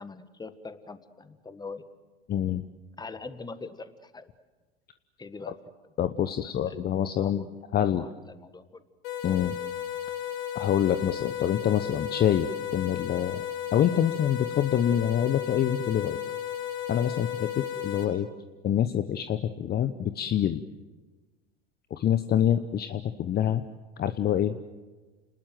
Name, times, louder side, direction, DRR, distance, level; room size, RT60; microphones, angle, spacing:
voice 1, 0.0-1.8 3.0-4.3 5.2-5.5 6.3-7.5 7.8-8.8, left 4 dB, 15° left, 12 dB, 1.6 m, -43 dB
voice 2, 2.3-2.6 6.0-7.4 7.7-8.1 9.2-9.6 10.5-13.4 13.7-16.2 16.9-18.3 18.6-20.6 21.9-23.6 24.0-24.6, left 10 dB, 30° left, 10 dB, 1.0 m, -26 dB
sound 1, 9.0-18.0, left 10 dB, 60° left, 6.5 m, -34 dB
29.0 x 20.0 x 7.6 m, 1.2 s
hypercardioid pair, 85°, 32 cm